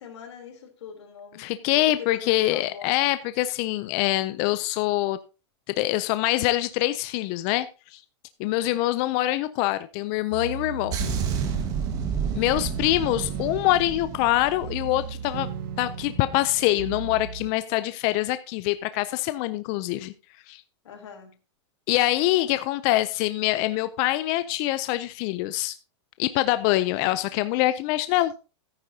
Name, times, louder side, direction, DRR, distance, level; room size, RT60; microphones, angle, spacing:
voice 1, 0.0-2.9 8.4-8.8 12.5-13.1 20.8-21.3, left 7 dB, 80° left, 3.3 m, -43 dB
voice 2, 1.4-5.2 5.8-7.7 7.9-8.0 8.4-11.0 12.3-15.5 15.8-20.1 20.5-20.6 21.9-25.8 26.2-28.3, left 16 dB, 30° left, 0.4 m, -24 dB
sound 1, 10.3-17.5, right 7 dB, 50° right, 1.1 m, -37 dB
sound 2, 10.9-15.5 15.7-16.0, right 6 dB, 25° right, 1.4 m, -31 dB
13.5 x 9.7 x 2.7 m
supercardioid pair, 170°, 15 cm